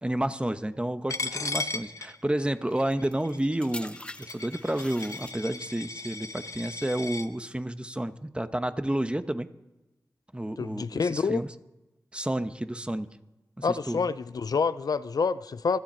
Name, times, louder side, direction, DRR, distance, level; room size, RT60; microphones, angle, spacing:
voice 1, 0.0-9.5 10.3-11.5 12.1-13.1 13.6-14.0, right 1 dB, 15° right, 1.0 m, -30 dB
Coin (dropping), 1.1-7.3, left 3 dB, 55° left, 0.9 m, -37 dB
sound 1, 2.7-5.8 6.6-6.9, left 1 dB, 15° left, 0.6 m, -45 dB
voice 2, 10.6-11.4 13.6-15.8, left 5 dB, 70° left, 0.4 m, -27 dB
26.5 x 9.0 x 4.4 m
cardioid pair, 45°, 7 cm